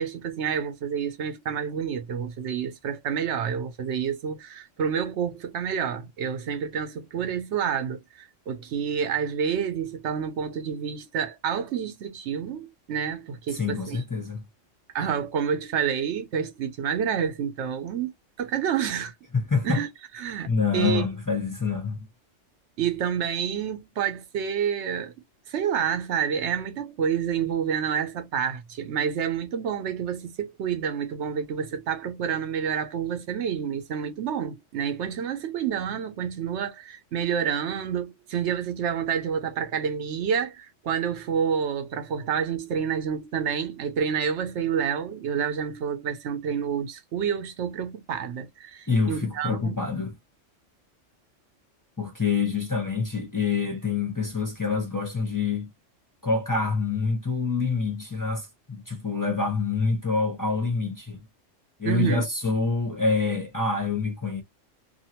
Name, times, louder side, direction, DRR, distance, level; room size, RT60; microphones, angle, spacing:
voice 1, 0.0-8.0 8.5-14.0 14.9-18.1 18.4-19.1 19.6-19.9 20.1-21.0 22.8-25.1 25.5-49.8 61.8-62.2, right 7 dB, 65° right, 1.0 m, -28 dB
voice 2, 13.5-14.4 19.3-19.8 20.5-22.0 48.9-50.2 52.0-55.7 56.2-61.2 61.8-64.4, left 4 dB, 20° left, 0.6 m, -26 dB
2.7 x 2.4 x 2.7 m
omnidirectional pair, 1.3 m